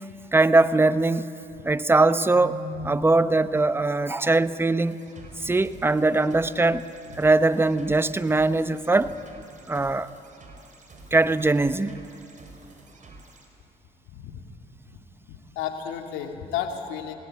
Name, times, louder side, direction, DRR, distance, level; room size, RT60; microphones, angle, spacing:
voice 1, 0.3-1.3 1.6-2.6 2.8-5.0 5.4-6.9 7.2-9.1 9.7-10.1 11.1-12.0, right 2 dB, 10° right, 14 dB, 0.8 m, -21 dB
Keyboard (musical), 2.2-4.1, equal, 40° left, 7.8 m, -39 dB
sound 1, 4.8-13.5, right 2 dB, 40° right, 4.7 m, -49 dB
voice 2, 14.1-14.4 15.3-17.2, left 9 dB, 85° left, 4 dB, 2.4 m, -33 dB
27.5 x 18.0 x 9.0 m, 2.7 s
supercardioid pair, 65°, 19 cm